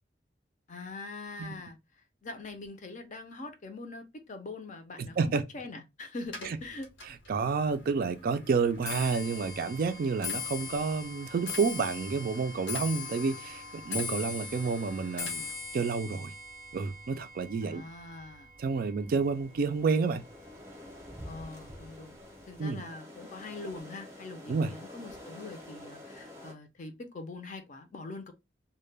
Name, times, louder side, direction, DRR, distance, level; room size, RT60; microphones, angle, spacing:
voice 1, 0.7-1.8 2.2-6.9 17.6-18.9 21.2-22.2 22.5-28.3, left 3 dB, 40° left, 0.5 m, -43 dB
voice 2, 5.0-5.4 6.4-6.6 7.3-15.5 15.7-16.3 16.7-17.8 18.6-20.2 22.6-22.8 24.5-24.7, right 4 dB, 50° right, 0.3 m, -29 dB
Clock, 6.3-19.6 19.9-20.4 21.2-21.3 21.6-22.0 22.3-22.4, left 5 dB, 90° left, 0.9 m, -41 dB
sound 1, 19.2-26.5, left 1 dB, 15° right, 0.7 m, -48 dB
2.2 x 2.1 x 3.1 m
head